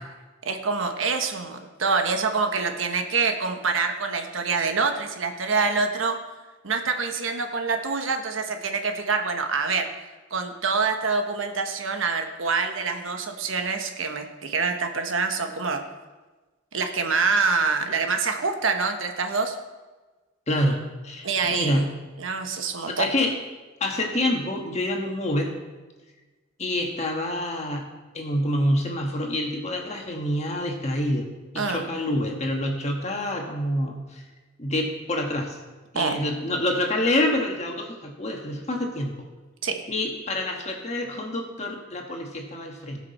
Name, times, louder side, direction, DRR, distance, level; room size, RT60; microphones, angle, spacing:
voice 1, 0.4-6.2 6.6-9.9 10.3-15.8 16.7-19.6 21.2-21.8 22.2-23.1 31.5-31.8 35.9-36.2 39.6-39.8, right 4 dB, 75° right, 5 dB, 1.1 m, -26 dB
voice 2, 20.5-21.9 23.0-23.3 23.8-25.5 26.6-27.8 28.1-31.3 31.5-34.2 34.6-35.6 35.9-39.1 39.9-43.0, left 1 dB, 35° left, 2 dB, 1.6 m, -27 dB
18.0 x 6.2 x 4.3 m, 1.2 s
head